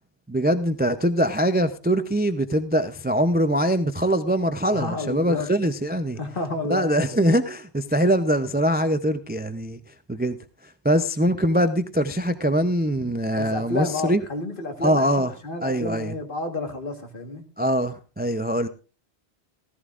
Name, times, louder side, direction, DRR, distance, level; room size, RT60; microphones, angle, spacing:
voice 1, 0.3-6.2 6.7-9.8 10.1-10.4 10.8-14.2 14.8-15.3 15.6-16.1 17.6-18.7, equal, 15° right, 0.4 m, -23 dB
voice 2, 4.7-5.5 6.2-6.9 13.4-17.4, left 3 dB, 55° left, 1.7 m, -30 dB
15.5 x 14.5 x 2.4 m
omnidirectional pair, 1.1 m